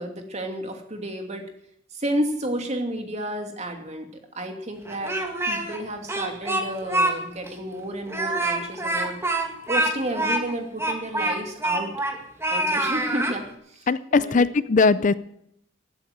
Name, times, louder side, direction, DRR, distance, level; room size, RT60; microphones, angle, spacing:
voice 1, 0.0-1.5 1.9-5.2 5.5-9.1 9.7-11.9 12.5-14.4, right 1 dB, 35° right, 4 dB, 2.7 m, -31 dB
Speech, 4.8-5.8 6.1-7.1 7.5-7.6 8.1-12.2 12.4-13.4, right 1 dB, 15° right, 2.2 m, -25 dB
voice 2, 13.9-15.1, left 4 dB, 40° left, 16 dB, 0.5 m, -19 dB
15.5 x 9.2 x 9.3 m, 0.74 s
head